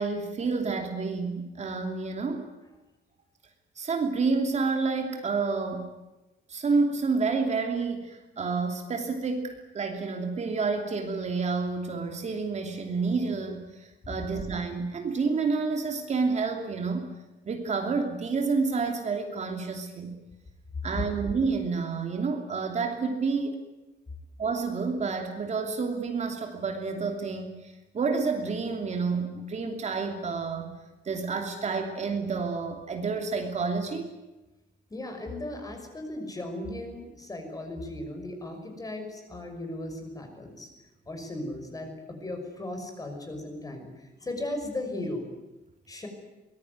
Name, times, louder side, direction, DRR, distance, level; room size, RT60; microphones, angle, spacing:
voice 1, 0.0-2.5 3.8-5.9 6.5-17.1 17.4-20.1 20.8-23.6 24.4-30.7 31.0-34.1, right 4 dB, 35° right, 4 dB, 2.9 m, -29 dB
voice 2, 34.9-40.7 41.1-45.3 45.9-46.1, left 1 dB, 20° left, 4 dB, 5.9 m, -37 dB
24.0 x 21.0 x 9.6 m, 1.1 s
cardioid pair, 170°, 19 cm